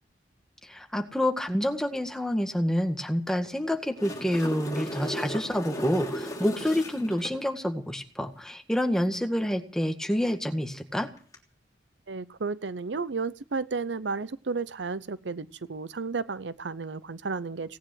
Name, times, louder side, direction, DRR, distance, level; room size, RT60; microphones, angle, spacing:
voice 1, 0.6-11.1, equal, 5° left, 5 dB, 1.9 m, -28 dB
sound 1, 3.7-7.3 11.2-11.3, equal, 20° left, 3.3 m, -35 dB
voice 2, 12.1-17.8, right 4 dB, 80° right, 17 dB, 0.7 m, -33 dB
18.5 x 10.0 x 7.8 m, 0.42 s
head